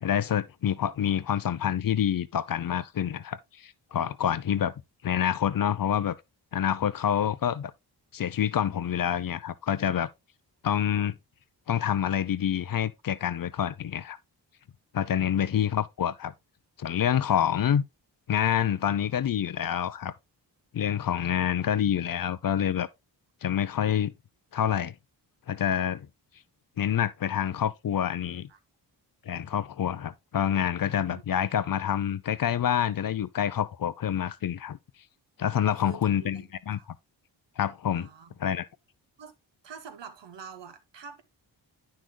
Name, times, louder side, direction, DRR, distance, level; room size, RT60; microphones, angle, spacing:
voice 1, 0.0-4.7 5.0-6.2 6.5-7.7 8.1-10.1 10.6-11.1 11.7-14.2 14.9-16.3 16.8-17.8 18.3-20.1 20.7-22.9 23.4-24.1 24.5-24.9 25.5-26.1 26.8-28.5 29.3-34.8 35.4-36.8 37.6-38.1 38.4-38.6, left 9 dB, 50° left, 0.6 m, -27 dB
voice 2, 30.8-31.2 35.7-36.5 36.8-36.9 37.9-38.6 39.2-39.4 39.6-41.2, right 6 dB, 70° right, 1.2 m, -47 dB
9.0 x 6.5 x 2.2 m
cardioid pair, 50°, 44 cm